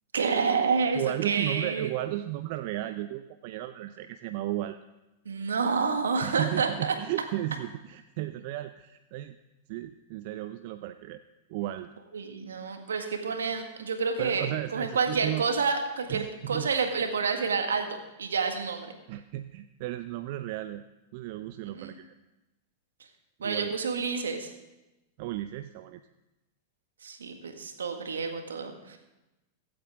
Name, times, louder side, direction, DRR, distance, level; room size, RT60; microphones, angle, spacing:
voice 1, 0.1-1.9 5.2-6.9 12.1-18.9 21.6-21.9 23.4-24.5 27.0-29.0, right 5 dB, 80° right, 5 dB, 1.8 m, -29 dB
voice 2, 0.9-4.8 6.2-9.4 9.7-11.2 11.5-11.9 14.2-15.4 16.1-16.7 19.1-20.8 21.1-22.1 23.4-23.7 25.2-26.0, right 15 dB, 55° right, 10 dB, 0.5 m, -34 dB
23.5 x 8.7 x 3.6 m, 1.0 s
hypercardioid pair, 95°, 0 cm